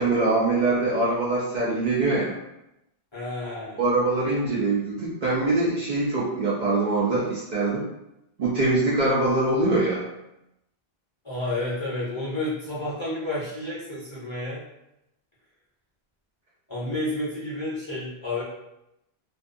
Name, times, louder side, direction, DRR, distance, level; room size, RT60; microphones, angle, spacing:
voice 1, 0.0-2.4 3.8-7.8 8.4-10.0, right 2 dB, 55° right, -6 dB, 0.6 m, -23 dB
voice 2, 3.1-3.8 11.2-14.6 16.7-18.4, left 1 dB, 30° left, -8 dB, 0.7 m, -30 dB
2.5 x 2.2 x 2.5 m, 0.86 s
omnidirectional pair, 1.1 m